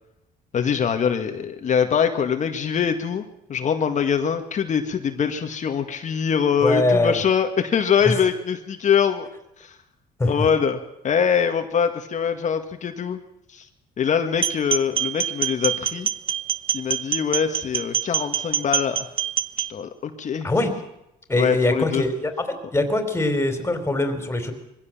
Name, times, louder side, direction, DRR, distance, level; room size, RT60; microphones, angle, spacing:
voice 1, 0.5-3.2 3.5-9.3 9.6-9.8 10.2-10.8 11.0-13.2 13.5-13.6 14.0-16.1 16.7-19.1 19.7-20.5 21.4-22.0, left 7 dB, 45° left, 6 dB, 1.9 m, -23 dB
voice 2, 6.6-7.2 10.2-10.3 20.4-20.7 21.3-24.5, left 2 dB, 15° left, 6 dB, 3.9 m, -22 dB
sound 1, 14.3-19.7, right 8 dB, 35° right, 0.9 m, -25 dB
22.5 x 16.0 x 7.4 m, 0.83 s
cardioid pair, 110°, 17 cm